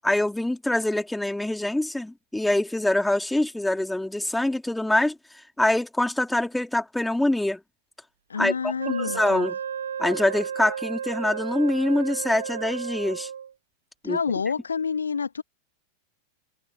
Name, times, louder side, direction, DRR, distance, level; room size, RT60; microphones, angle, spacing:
voice 1, 0.0-5.2 5.6-7.6 8.4-8.7 9.0-9.5 10.0-13.3 14.0-14.2, left 1 dB, 5° left, 3.1 m, -24 dB
voice 2, 8.3-9.5 14.0-15.4, left 6 dB, 75° left, 2.1 m, -28 dB
Wind instrument woodwind instrument, 8.8-13.5, right 8 dB, 70° right, 1.1 m, -33 dB
figure-of-eight pair, 90°, 0 cm